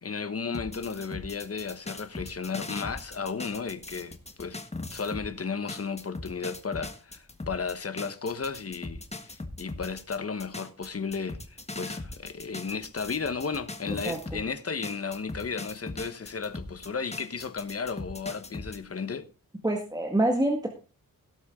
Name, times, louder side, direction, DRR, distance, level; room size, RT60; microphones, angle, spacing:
voice 1, 0.0-4.6 4.9-19.3, left 5 dB, 40° left, 1.2 m, -34 dB
sound 1, 0.5-5.3 5.7-14.5 14.8-18.8, left 2 dB, 20° left, 1.5 m, -40 dB
voice 2, 14.0-14.4 19.6-20.7, right 1 dB, 10° right, 1.8 m, -26 dB
17.5 x 7.9 x 3.8 m
wide cardioid pair, 160°, 35 cm